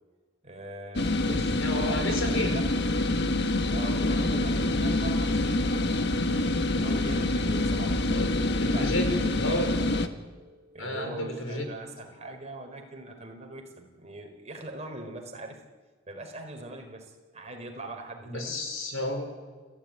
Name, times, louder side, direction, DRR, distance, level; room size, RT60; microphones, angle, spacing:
voice 1, 0.4-3.2 3.7-6.3 6.7-15.6 16.1-18.6, right 1 dB, 35° right, 4 dB, 4.3 m, -42 dB
sound 1, 0.9-10.1, left 2 dB, 55° left, 1.5 m, -26 dB
voice 2, 1.5-2.5 8.1-8.3 8.6-9.1 9.4-9.8 10.8-11.7 18.3-19.3, left 1 dB, 80° left, 5 dB, 5.1 m, -31 dB
29.5 x 13.5 x 9.6 m, 1.4 s
head